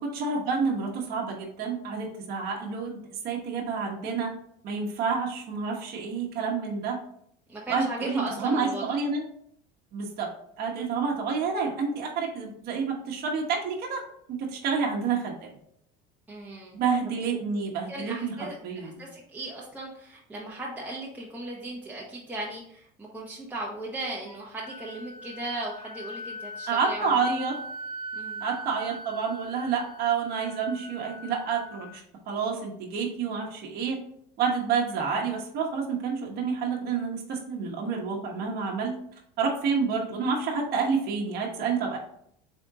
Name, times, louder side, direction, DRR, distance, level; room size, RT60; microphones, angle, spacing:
voice 1, 0.0-3.0 3.2-4.3 4.6-7.0 7.7-9.2 9.9-10.3 10.6-14.0 14.4-15.5 16.7-19.0 26.7-27.6 28.4-34.0 34.4-39.0 39.4-42.0, right 5 dB, 50° right, -2 dB, 1.1 m, -29 dB
voice 2, 7.5-9.0 16.3-16.7 17.3-17.4 17.9-27.3 28.1-28.4, right 1 dB, 10° right, -5 dB, 0.8 m, -37 dB
Wind instrument woodwind instrument, 24.3-32.0, right 1 dB, 70° left, 0.9 m, -41 dB
3.7 x 3.5 x 3.6 m, 0.68 s
supercardioid pair, 120°, 20 cm